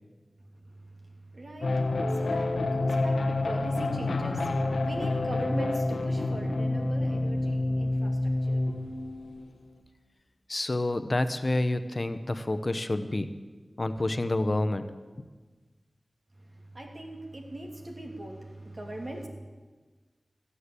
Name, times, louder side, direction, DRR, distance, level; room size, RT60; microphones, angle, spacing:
voice 1, 1.3-8.6 16.7-19.3, right 1 dB, 55° right, 2 dB, 2.7 m, -40 dB
sound 1, 1.6-9.5, left 2 dB, 90° left, 0.9 m, -28 dB
voice 2, 10.5-13.3 13.8-14.8, left 2 dB, 45° left, 10 dB, 0.8 m, -28 dB
14.5 x 8.4 x 8.2 m, 1.3 s
cardioid pair, 45°, 0 cm